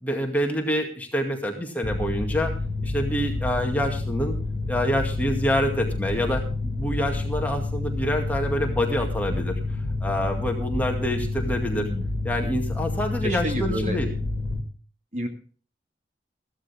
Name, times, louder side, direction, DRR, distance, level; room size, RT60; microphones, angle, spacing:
voice 1, 0.0-2.5 2.8-4.4 4.7-9.5 10.0-11.9 12.2-14.1, equal, 10° left, 2 dB, 2.2 m, -27 dB
Mechanical fan, 1.8-14.6, left 2 dB, 60° left, 2.0 m, -29 dB
voice 2, 11.7-12.1 13.2-14.0 15.1-15.3, equal, 40° right, 5 dB, 2.0 m, -30 dB
15.0 x 13.0 x 3.6 m, 0.39 s
head